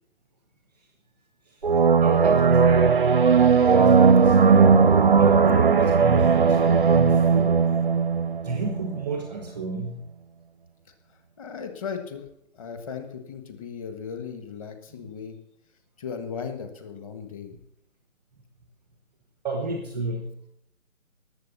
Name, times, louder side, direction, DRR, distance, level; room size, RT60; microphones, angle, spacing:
sound 1, 1.6-9.0, right 5 dB, 40° right, 0.4 m, -18 dB
voice 1, 2.0-3.0 3.7-4.4 5.2-7.6 8.4-10.1 15.0-15.1 19.4-20.3, right 3 dB, 5° left, 4 dB, 0.6 m, -30 dB
voice 2, 11.4-12.2 12.5-15.4 16.0-17.5, left 6 dB, 25° left, 7 dB, 1.5 m, -36 dB
19.0 x 7.5 x 7.0 m, 0.76 s
hypercardioid pair, 155°, 41 cm